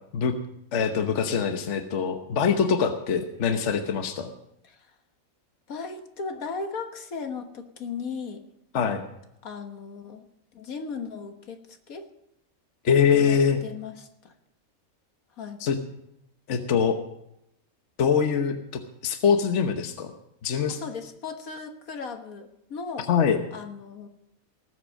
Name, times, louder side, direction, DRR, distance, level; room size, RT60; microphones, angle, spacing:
voice 1, 0.7-4.3 8.7-9.0 12.8-13.6 15.6-15.8 16.5-17.0 18.0-18.6 19.0-20.1 20.4-20.8 23.1-23.4, left 6 dB, 55° left, 7 dB, 1.3 m, -23 dB
voice 2, 5.7-8.4 9.4-10.3 10.5-11.6 11.9-12.1 13.1-14.3 15.4-15.6 20.7-23.1 23.5-24.1, left 5 dB, 75° left, 6 dB, 1.8 m, -36 dB
18.5 x 8.0 x 6.3 m, 0.80 s
omnidirectional pair, 1.5 m